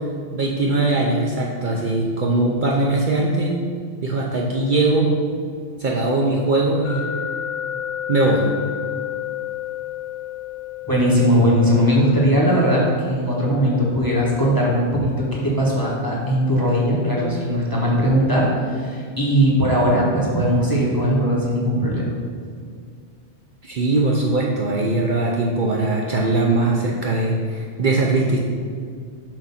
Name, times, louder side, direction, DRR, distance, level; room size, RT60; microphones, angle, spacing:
voice 1, 0.3-3.6 4.0-5.1 5.8-7.1 8.1-8.4 23.6-28.4, right 2 dB, 55° right, -2 dB, 0.7 m, -20 dB
sound 1, 6.8-19.7, left 10 dB, 75° right, 1.7 m, -34 dB
voice 2, 10.9-18.5 18.8-22.1, equal, 20° left, -5 dB, 1.0 m, -19 dB
7.5 x 2.6 x 5.7 m, 2.1 s
omnidirectional pair, 1.2 m